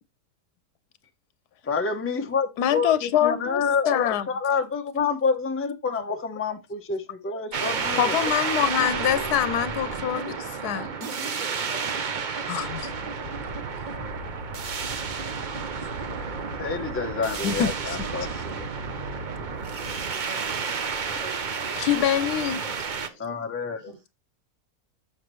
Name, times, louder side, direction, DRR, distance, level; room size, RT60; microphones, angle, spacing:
voice 1, 1.6-8.3 16.6-18.7 19.7-20.0 20.7-21.0 23.2-23.9, left 5 dB, 15° left, 0.5 m, -28 dB
voice 2, 2.6-4.3 8.0-10.4 10.6-10.8 12.5-12.9 17.4-18.0 21.8-22.6, left 10 dB, 85° left, 1.2 m, -24 dB
sound 1, 7.5-23.1, right 5 dB, 45° right, 0.6 m, -31 dB
voice 3, 8.9-9.3 9.8-12.6 13.0-13.5 21.1-22.1 22.5-23.3 23.8-24.0, right 3 dB, 25° right, 2.2 m, -45 dB
sound 2, 12.6-20.0, left 2 dB, 70° right, 3.3 m, -42 dB
7.1 x 6.7 x 3.1 m
omnidirectional pair, 1.6 m